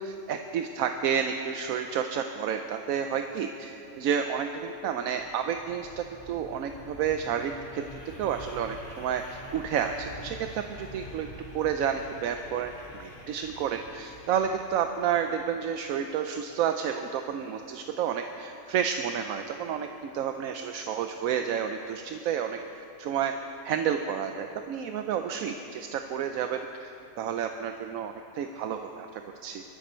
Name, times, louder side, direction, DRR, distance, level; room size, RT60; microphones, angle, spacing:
voice 1, 0.0-7.8 8.2-11.3 11.5-23.3 23.6-29.6, right 8 dB, 80° right, 6 dB, 1.0 m, -30 dB
sound 1, 4.7-16.2, equal, 40° left, 1.8 m, -47 dB
21.0 x 13.5 x 4.4 m, 3.0 s
omnidirectional pair, 1.5 m